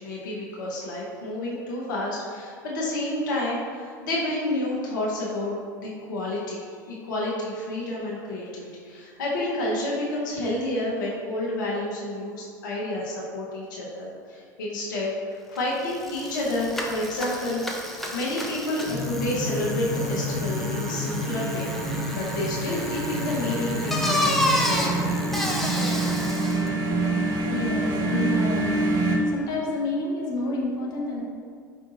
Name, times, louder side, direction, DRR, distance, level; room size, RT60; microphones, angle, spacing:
voice 1, 0.0-15.1 15.5-21.7 22.1-25.0, left 1 dB, 70° left, -5 dB, 0.8 m, -30 dB
Bicycle, 15.6-15.7 15.9-26.7, left 1 dB, ahead, 0.5 m, -31 dB
sound 1, 18.9-29.2, right 1 dB, 35° right, 0.8 m, -27 dB
voice 2, 27.5-28.8 29.3-31.2, left 2 dB, 40° left, -3 dB, 0.9 m, -29 dB
4.9 x 3.6 x 2.5 m, 2.2 s
figure-of-eight pair, 80°, 11 cm